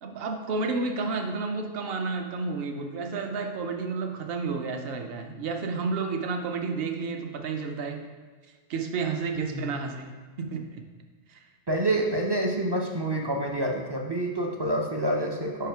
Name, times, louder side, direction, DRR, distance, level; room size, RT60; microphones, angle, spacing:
voice 1, 0.0-8.0 8.7-10.8 11.3-11.4, right 4 dB, 60° right, 5 dB, 0.9 m, -31 dB
voice 2, 11.7-15.7, right 1 dB, 40° right, 1 dB, 0.4 m, -27 dB
5.5 x 5.0 x 4.5 m, 1.5 s
omnidirectional pair, 1.2 m